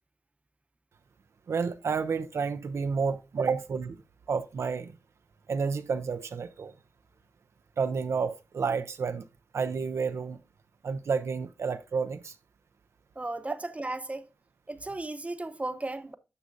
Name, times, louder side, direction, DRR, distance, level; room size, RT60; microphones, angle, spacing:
voice 1, 1.5-4.0 4.3-5.0 5.5-6.7 7.8-9.2 9.5-10.4 10.8-12.3, right 5 dB, 70° right, 0.5 m, -30 dB
voice 2, 13.2-14.3 14.7-16.1, right 2 dB, 25° right, 0.8 m, -35 dB
9.6 x 6.1 x 2.6 m
cardioid pair, 50°, 5 cm